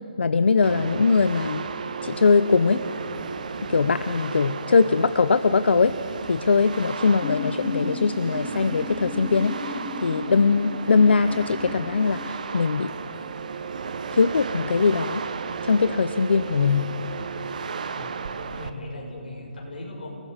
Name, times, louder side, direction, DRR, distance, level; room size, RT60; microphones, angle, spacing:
voice 1, 0.2-1.7 2.0-2.8 3.6-6.0 6.3-12.9 14.1-15.2 15.6-16.9, left 4 dB, 85° left, 12 dB, 0.7 m, -21 dB
sound 1, 0.6-18.7, right 5 dB, 45° right, 1.0 m, -34 dB
sound 2, 7.2-12.3, left 3 dB, 5° left, 0.7 m, -35 dB
voice 2, 18.5-20.2, left 1 dB, 60° left, -1 dB, 6.9 m, -37 dB
30.0 x 19.0 x 5.1 m, 2.6 s
hypercardioid pair, 175°, 6 cm